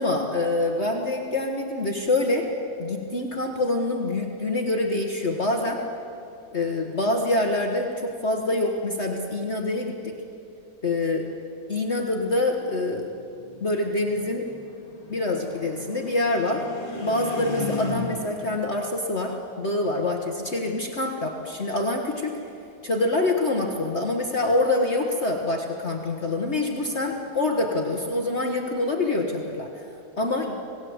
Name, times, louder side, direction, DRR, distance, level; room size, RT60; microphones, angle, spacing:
voice 1, 0.0-2.5 2.8-5.8 6.5-10.1 10.8-11.3 11.7-13.1 13.6-14.4 15.1-16.6 17.0-22.4 22.8-29.8 30.2-30.5, left 2 dB, 40° left, 2 dB, 1.6 m, -25 dB
sound 1, 13.1-18.5, left 2 dB, 20° left, 3.1 m, -35 dB
26.5 x 18.5 x 8.0 m, 2.6 s
omnidirectional pair, 1.9 m